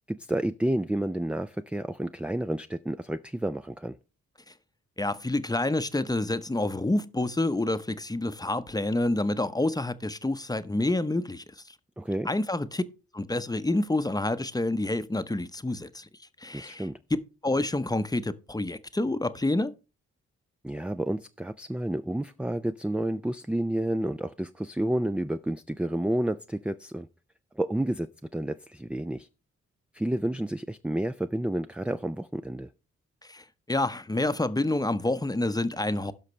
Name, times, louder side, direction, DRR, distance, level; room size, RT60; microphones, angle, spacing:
voice 1, 0.1-4.0 12.0-12.3 16.5-17.0 20.6-27.1 27.6-29.3 29.9-32.7, right 1 dB, 5° right, 0.4 m, -30 dB
voice 2, 5.0-11.4 12.3-12.8 13.1-16.1 16.4-19.7 33.3-36.1, left 2 dB, 15° left, 0.8 m, -28 dB
16.5 x 5.7 x 3.2 m
supercardioid pair, 50°, 29 cm